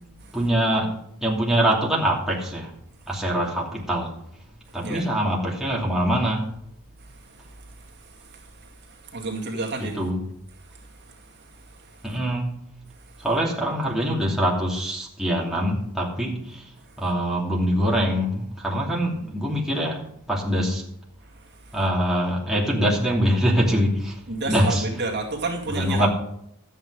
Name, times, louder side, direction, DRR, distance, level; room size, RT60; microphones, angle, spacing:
voice 1, 0.3-1.0 1.2-2.7 3.1-4.1 4.7-6.5 9.8-10.2 12.0-12.5 13.2-16.7 17.0-20.0 20.3-20.8 21.7-24.2 24.4-24.9 25.6-26.1, equal, ahead, -4 dB, 2.7 m, -24 dB
voice 2, 7.8-10.0 10.7-10.9 11.1-12.2 13.1-13.2 21.7-21.8 24.3-26.1, right 3 dB, 55° right, 0 dB, 2.1 m, -32 dB
13.0 x 8.9 x 4.9 m, 0.74 s
head